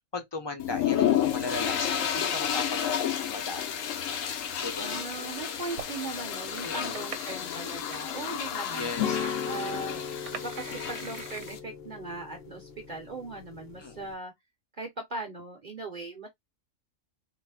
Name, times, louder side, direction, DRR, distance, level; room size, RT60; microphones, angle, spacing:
voice 1, 0.0-3.8 4.6-5.0 6.6-7.0 8.7-9.2 13.8-14.1, left 3 dB, 35° left, 0.4 m, -37 dB
sound 1, 0.6-11.6, left 9 dB, 75° left, 1.0 m, -31 dB
sound 2, 3.7-4.8 5.4-6.1 6.5-8.0 8.4-8.5 8.8-9.6 10.0-11.5, right 8 dB, 70° right, 0.9 m, -43 dB
voice 2, 4.8-8.9 9.4-14.3 14.8-16.3, right 3 dB, 45° right, 0.7 m, -39 dB
sound 3, 9.0-14.1, left 8 dB, 55° left, 0.8 m, -36 dB
4.0 x 2.1 x 2.3 m
omnidirectional pair, 1.4 m